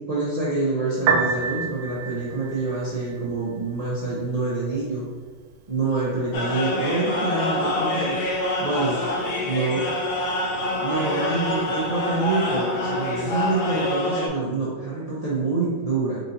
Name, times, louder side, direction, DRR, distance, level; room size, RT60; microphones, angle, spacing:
voice 1, 0.1-5.1 5.7-8.2 8.6-9.0 9.4-9.9 10.8-16.2, right 3 dB, 55° right, -8 dB, 0.4 m, -26 dB
Piano, 0.9-13.9, right 5 dB, 75° right, 1.3 m, -34 dB
sound 1, 6.3-14.3, left 1 dB, 90° left, 1.6 m, -26 dB
4.4 x 2.8 x 4.0 m, 1.5 s
omnidirectional pair, 2.2 m